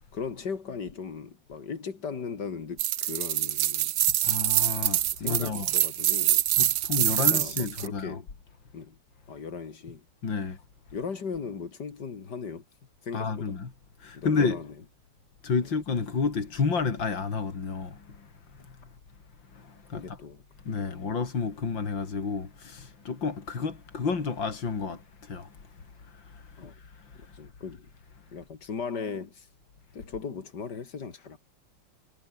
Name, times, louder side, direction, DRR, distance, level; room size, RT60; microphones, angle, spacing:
voice 1, 0.1-3.9 5.2-6.4 7.0-8.2 8.7-9.0 9.3-10.0 10.9-12.6 13.0-13.5 14.1-14.7 15.6-15.7 19.9-20.4 20.8-21.1 26.6-26.7 27.1-27.9 28.3-29.5 29.9-31.4, left 5 dB, 65° left, 2.9 m, -38 dB
sound 1, 2.8-7.9, right 13 dB, 85° right, 1.7 m, -25 dB
voice 2, 4.2-5.7 6.6-8.2 10.2-10.6 13.1-13.7 14.0-14.6 15.4-18.3 19.5-20.2 20.7-25.5 26.3-26.7, left 5 dB, 80° left, 3.8 m, -30 dB
omnidirectional pair, 2.0 m